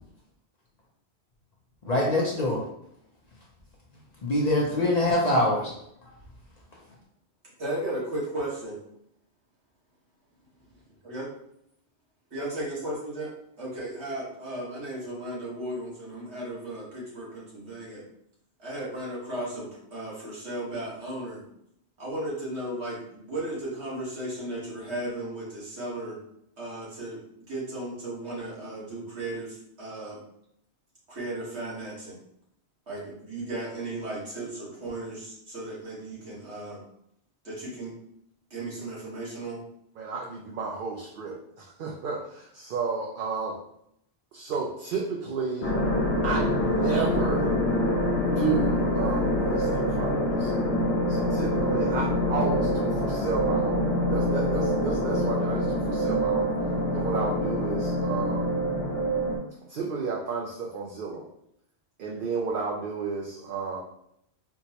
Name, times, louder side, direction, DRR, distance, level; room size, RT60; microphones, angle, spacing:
voice 1, 1.8-2.6 4.2-5.6, left 1 dB, 45° left, -3 dB, 0.6 m, -23 dB
voice 2, 7.6-8.8 11.0-11.3 12.3-13.3 13.6-18.0 18.6-21.4 22.0-26.2 26.6-27.2 27.5-30.2 31.1-32.2 32.9-36.8 37.4-37.9 38.5-39.6, right 1 dB, 75° right, -6 dB, 1.6 m, -35 dB
voice 3, 40.0-43.5 44.3-45.7 46.2-47.5 48.2-50.5 51.1-56.5 56.9-58.5 59.7-61.3 62.0-63.8, right 4 dB, 60° right, -2 dB, 0.6 m, -32 dB
sound 1, 45.6-59.4, equal, 70° left, 0.9 m, -25 dB
4.4 x 2.1 x 2.8 m, 0.75 s
omnidirectional pair, 1.1 m